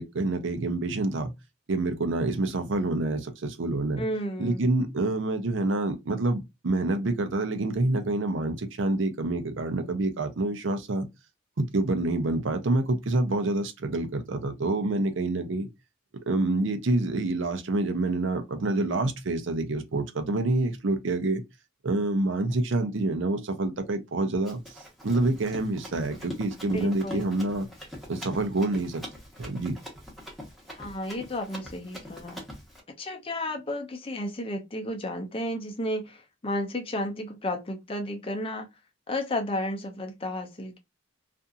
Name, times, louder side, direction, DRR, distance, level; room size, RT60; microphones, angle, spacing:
voice 1, 0.0-1.3 1.7-4.0 4.4-11.1 11.6-15.7 16.3-21.4 21.8-24.6 25.0-27.7 28.1-29.0 29.4-29.8, right 2 dB, 75° right, 0.6 m, -27 dB
voice 2, 4.0-4.7 26.7-27.5 30.7-32.4 33.0-38.7 39.1-40.8, left 1 dB, 30° left, 0.5 m, -33 dB
Run, 24.5-32.8, left 1 dB, ahead, 0.9 m, -43 dB
2.7 x 2.5 x 2.3 m
head